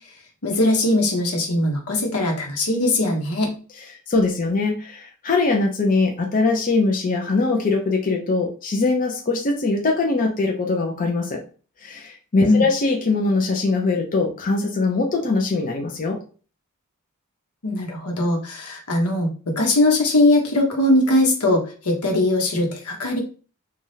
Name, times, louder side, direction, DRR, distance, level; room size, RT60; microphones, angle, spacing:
voice 1, 0.4-3.5 12.4-12.6 17.6-23.2, left 1 dB, 90° left, 1 dB, 0.9 m, -20 dB
voice 2, 4.1-11.4 11.8-16.2, left 3 dB, 40° left, 1 dB, 0.5 m, -22 dB
3.3 x 2.3 x 2.7 m, 0.38 s
head